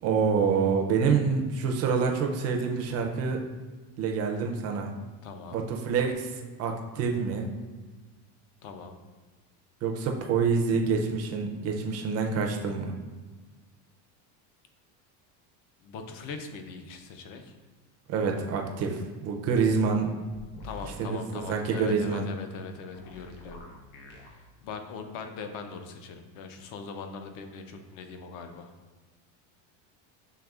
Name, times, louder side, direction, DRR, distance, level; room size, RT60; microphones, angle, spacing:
voice 1, 0.0-3.4 4.0-4.9 5.5-6.3 6.6-7.5 9.8-13.0 18.1-20.1 21.0-22.3, right 5 dB, 35° right, 2 dB, 0.4 m, -27 dB
voice 2, 5.2-5.6 8.6-8.9 15.8-17.5 20.6-23.6 24.2-28.7, left 5 dB, 45° left, 6 dB, 0.5 m, -41 dB
sound 1, 20.3-21.0 22.9-24.3, left 2 dB, 85° left, 1.0 m, -46 dB
6.5 x 3.4 x 2.3 m, 1.3 s
cardioid pair, 160°, 46 cm